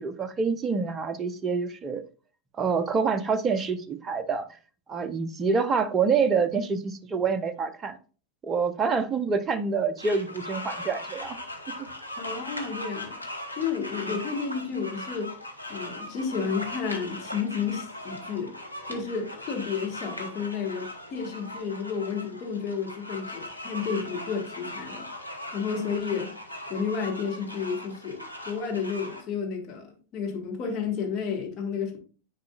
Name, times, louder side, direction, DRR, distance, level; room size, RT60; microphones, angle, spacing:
voice 1, 0.0-2.0 2.6-4.6 4.9-8.0 8.4-11.4 14.1-14.2, right 5 dB, 20° right, 0.6 m, -27 dB
sound 1, 10.0-29.2, left 1 dB, 90° left, 1.0 m, -39 dB
voice 2, 12.2-13.2 13.6-15.4 15.7-18.5 18.9-25.1 25.5-26.3 26.7-32.0, left 6 dB, 35° left, 1.7 m, -31 dB
9.3 x 4.8 x 2.4 m
figure-of-eight pair, 90°, 0 cm